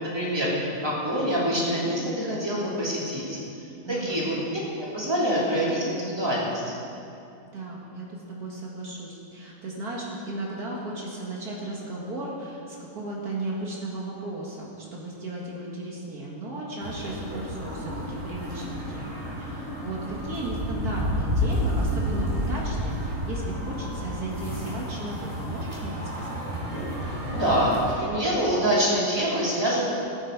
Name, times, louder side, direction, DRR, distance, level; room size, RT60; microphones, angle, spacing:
voice 1, 0.0-3.4 3.9-4.3 4.9-6.7 27.3-29.9, equal, 15° right, -6 dB, 3.0 m, -25 dB
voice 2, 3.8-4.2 7.4-26.4, right 2 dB, 65° right, -3 dB, 2.1 m, -35 dB
sound 1, 16.8-27.9, equal, 40° right, 3.6 m, -30 dB
18.0 x 9.1 x 4.6 m, 2.7 s
omnidirectional pair, 1.7 m